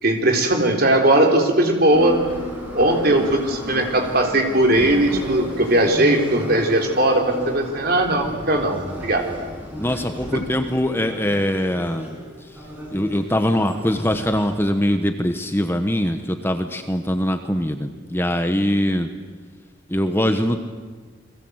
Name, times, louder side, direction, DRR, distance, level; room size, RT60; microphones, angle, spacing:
voice 1, 0.0-2.2 2.7-8.8 9.0-9.3 10.3-10.4, right 1 dB, 50° right, 3 dB, 3.9 m, -18 dB
Subway metro underground, 1.9-14.4, equal, 10° right, 7.5 m, -33 dB
voice 2, 9.8-12.2 12.9-19.1 19.9-20.6, equal, 10° left, 7 dB, 1.2 m, -22 dB
29.5 x 22.0 x 8.1 m, 1.4 s
head